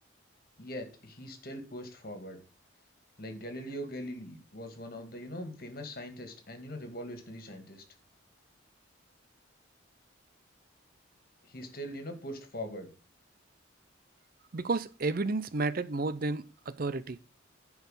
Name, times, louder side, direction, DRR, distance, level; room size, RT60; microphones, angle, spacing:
voice 1, 0.6-2.4 3.2-7.8 11.4-12.9, equal, 45° left, 2.1 m, -41 dB
voice 2, 14.5-17.2, right 3 dB, 45° right, 0.5 m, -32 dB
10.5 x 4.8 x 6.6 m
head